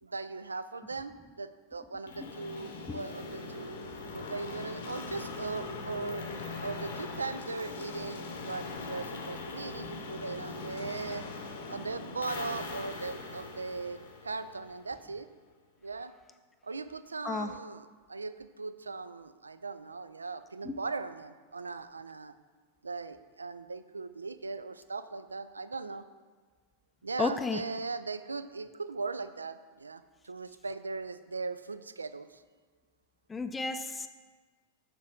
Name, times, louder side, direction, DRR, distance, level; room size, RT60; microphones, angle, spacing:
voice 1, 0.0-3.8 4.1-6.2 6.6-11.2 11.7-15.3 15.8-16.1 16.6-22.3 22.8-26.0 27.0-32.4, right 4 dB, 75° right, 13 dB, 0.3 m, -39 dB
sound 1, 2.1-14.9, left 3 dB, 60° left, 0.8 m, -41 dB
voice 2, 27.2-27.6 33.3-34.1, left 3 dB, 15° left, 8 dB, 0.4 m, -32 dB
7.2 x 6.4 x 3.6 m, 1.4 s
figure-of-eight pair, 90°, 0 cm